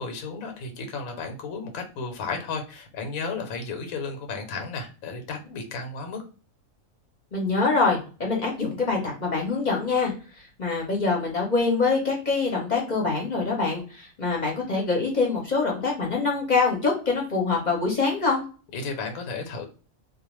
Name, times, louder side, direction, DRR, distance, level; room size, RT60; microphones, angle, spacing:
voice 1, 0.0-6.2 18.7-19.7, left 4 dB, 85° left, 5 dB, 1.1 m, -33 dB
voice 2, 7.3-10.1 10.6-18.4, left 4 dB, 40° left, -1 dB, 0.7 m, -24 dB
2.4 x 2.1 x 3.0 m, 0.36 s
omnidirectional pair, 1.4 m